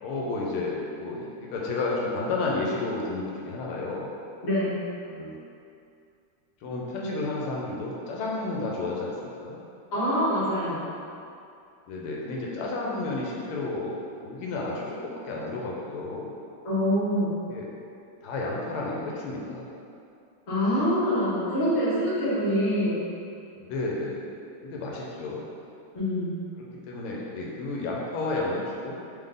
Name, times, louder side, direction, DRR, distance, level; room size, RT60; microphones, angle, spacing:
voice 1, 0.0-4.1 5.1-5.4 6.6-9.6 11.9-16.3 17.5-17.7 18.2-19.7 23.6-24.2 24.6-25.4 26.9-29.0, left 2 dB, 85° left, -3 dB, 1.5 m, -31 dB
voice 2, 4.4-4.8 9.9-10.9 16.6-17.3 20.5-23.0 25.9-26.4, equal, 25° left, -11 dB, 1.2 m, -25 dB
3.8 x 3.5 x 3.7 m, 2.5 s
omnidirectional pair, 2.3 m